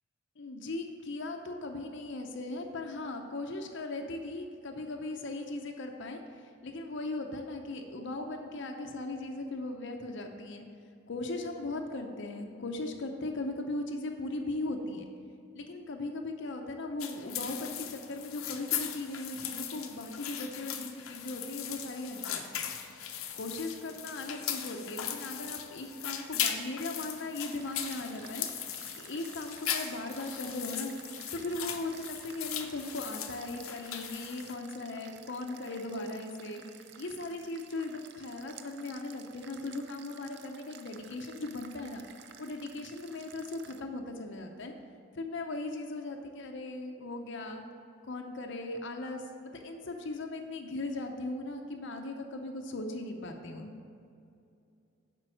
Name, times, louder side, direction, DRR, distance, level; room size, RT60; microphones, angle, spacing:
voice 1, 0.4-10.7 11.1-15.1 15.5-22.8 23.3-28.5 28.9-30.9 31.3-36.6 37.0-42.0 42.4-44.7 45.1-47.6 48.0-53.7, left 2 dB, 60° left, 3 dB, 0.6 m, -38 dB
sound 1, 17.0-34.5, left 9 dB, 90° left, 0.7 m, -38 dB
sound 2, 27.6-43.8, right 8 dB, 50° right, 0.4 m, -53 dB
7.6 x 5.3 x 6.1 m, 2.5 s
head